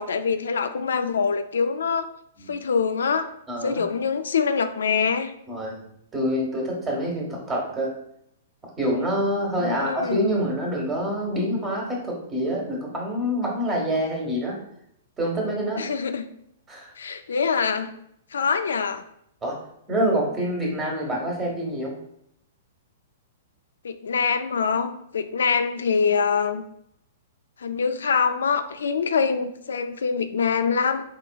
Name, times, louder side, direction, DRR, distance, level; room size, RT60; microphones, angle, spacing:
voice 1, 0.0-2.1 2.5-3.3 3.6-5.3 9.6-10.3 15.8-16.2 17.0-17.9 18.3-19.0 23.8-26.6 27.6-31.0, left 5 dB, 90° left, 9 dB, 0.3 m, -24 dB
voice 2, 3.5-3.9 5.5-5.8 6.1-7.9 8.8-14.6 15.2-15.9 16.7-16.9 19.4-19.6 19.9-21.9, equal, 20° right, -2 dB, 1.3 m, -26 dB
3.8 x 3.8 x 2.3 m, 0.74 s
hypercardioid pair, 140°, 0 cm